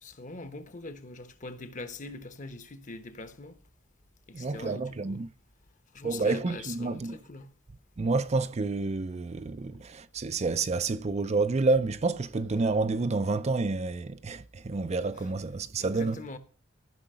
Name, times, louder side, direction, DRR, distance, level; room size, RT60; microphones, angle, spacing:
voice 1, 0.0-3.6 4.3-5.2 5.9-7.5 15.1-15.3 15.8-16.4, left 3 dB, 40° left, 1.1 m, -42 dB
voice 2, 4.3-5.3 6.0-7.2 8.0-16.2, right 3 dB, 35° right, 0.4 m, -29 dB
14.0 x 5.8 x 5.5 m
head